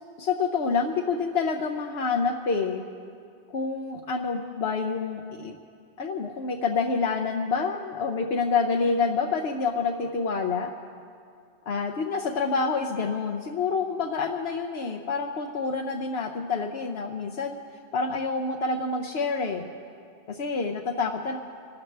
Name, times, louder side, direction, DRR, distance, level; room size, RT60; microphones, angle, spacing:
voice 1, 0.2-2.8 3.5-5.6 6.0-10.7 11.7-17.6 17.9-19.6 20.3-21.4, left 4 dB, 80° left, 2 dB, 1.0 m, -27 dB
26.5 x 13.0 x 3.4 m, 2.3 s
omnidirectional pair, 1.0 m